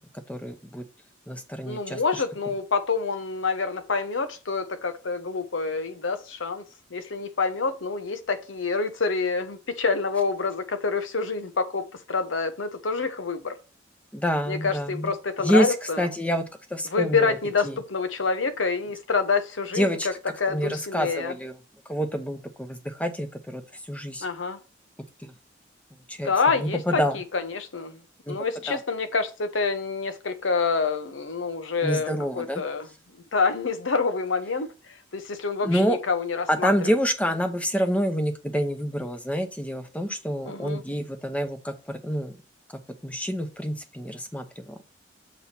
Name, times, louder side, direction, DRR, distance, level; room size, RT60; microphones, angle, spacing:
voice 1, 0.3-0.8 1.3-2.2 14.1-15.1 15.4-16.4 16.7-17.4 17.6-17.8 19.7-20.1 20.5-21.6 21.9-24.3 25.2-25.3 26.1-26.3 26.6-27.2 28.3-28.4 28.7-28.8 31.8-32.6 35.6-36.0 36.5-42.4 43.0-44.7, equal, 5° left, 0.7 m, -27 dB
voice 2, 1.6-13.6 14.5-16.1 16.8-20.1 20.4-21.3 24.2-24.6 26.2-28.0 28.3-32.9 33.3-37.0 40.4-40.8, left 4 dB, 85° left, 0.9 m, -27 dB
7.0 x 3.2 x 5.7 m
head